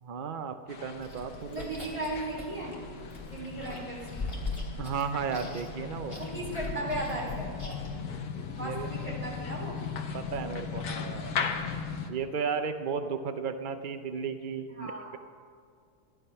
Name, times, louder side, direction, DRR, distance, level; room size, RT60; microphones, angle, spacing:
voice 1, 0.0-1.7 4.8-6.2 8.6-8.9 10.1-11.4 12.1-15.2, right 6 dB, 75° right, 8 dB, 0.4 m, -34 dB
sound 1, 0.7-12.1, left 6 dB, 70° left, 1.5 m, -38 dB
Chewing mastication, 1.0-8.0, left 3 dB, 15° left, 3.1 m, -41 dB
voice 2, 1.4-2.7 3.3-4.3 6.2-7.7 8.6-9.8 14.7-15.1, right 2 dB, 20° right, -5 dB, 4.2 m, -36 dB
14.5 x 11.5 x 5.6 m, 2.2 s
omnidirectional pair, 1.7 m